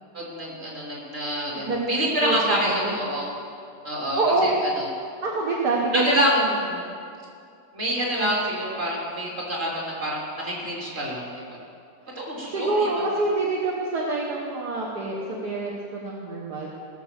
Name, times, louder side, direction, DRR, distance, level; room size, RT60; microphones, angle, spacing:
voice 1, 0.1-3.3 3.8-4.9 5.9-6.3 7.7-11.4 12.1-13.0, equal, 35° right, -4 dB, 3.4 m, -27 dB
voice 2, 1.6-1.9 2.2-2.9 4.2-4.6 5.2-6.5 6.8-6.9 8.2-8.3 12.1-12.3 12.5-16.7, right 2 dB, 60° right, -3 dB, 1.8 m, -26 dB
18.5 x 6.4 x 7.4 m, 2.4 s
omnidirectional pair, 2.0 m